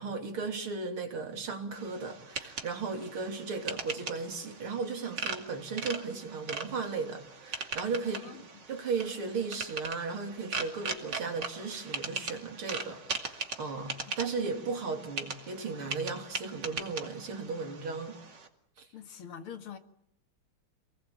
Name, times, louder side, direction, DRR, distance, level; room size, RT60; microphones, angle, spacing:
voice 1, 0.0-18.2 18.8-18.9, right 4 dB, 85° right, 3.9 m, -36 dB
sound 1, 1.7-18.5, right 4 dB, 55° right, 3.1 m, -40 dB
voice 2, 8.0-8.4 11.2-11.3 18.9-19.8, left 8 dB, 85° left, 2.8 m, -45 dB
27.5 x 20.0 x 8.6 m
omnidirectional pair, 2.3 m